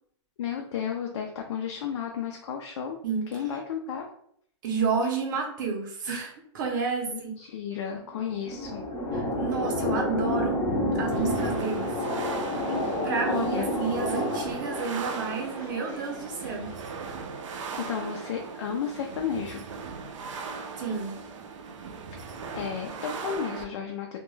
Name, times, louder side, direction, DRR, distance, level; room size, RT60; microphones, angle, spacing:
voice 1, 0.4-3.0 3.3-4.1 7.1-8.8 13.2-13.7 17.8-19.6 22.5-24.2, left 7 dB, 65° left, 2 dB, 0.4 m, -33 dB
voice 2, 4.6-7.3 9.1-10.6 11.0-11.9 12.9-16.8 20.8-21.2, right 5 dB, 40° right, 1 dB, 0.6 m, -30 dB
sound 1, 8.0-16.5, left 1 dB, 20° left, 0.5 m, -30 dB
sound 2, 11.1-23.6, right 5 dB, 90° right, 0.4 m, -38 dB
2.2 x 2.1 x 3.1 m, 0.66 s
supercardioid pair, 175°, 16 cm